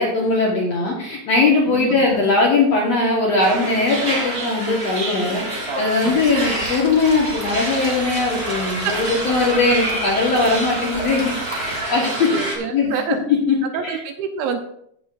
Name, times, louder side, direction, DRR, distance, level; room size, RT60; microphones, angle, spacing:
voice 1, 0.0-12.3 12.7-13.0 13.5-13.6 13.8-14.0, left 3 dB, 65° left, -3 dB, 1.7 m, -20 dB
voice 2, 1.7-2.0 6.0-6.2 8.8-8.9 12.3-13.2 13.6-14.6, right 7 dB, 80° right, 6 dB, 2.5 m, -27 dB
sound 1, 3.4-12.6, right 1 dB, 50° right, 1.0 m, -27 dB
sound 2, 6.1-11.8, right 1 dB, 15° right, 1.3 m, -36 dB
15.0 x 7.1 x 2.5 m, 0.71 s
omnidirectional pair, 4.7 m